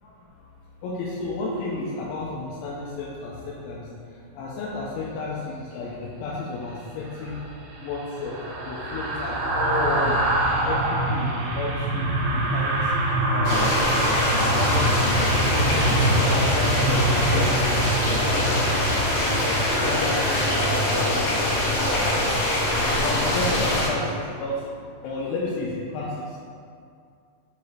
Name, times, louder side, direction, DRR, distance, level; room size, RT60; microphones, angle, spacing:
voice 1, 0.0-0.5 0.8-7.4 7.8-12.9 13.3-16.0 16.3-17.3 17.6-18.6 19.7-21.5 22.0-22.3 22.7-26.4, left 3 dB, 85° left, -5 dB, 2.8 m, -33 dB
sound 1, 7.1-20.4 20.8-21.0, right 1 dB, 75° right, 2.8 m, -25 dB
sound 2, 13.4-23.9, left 1 dB, 65° left, 2.9 m, -23 dB
7.0 x 4.8 x 2.8 m, 2.3 s
omnidirectional pair, 5.8 m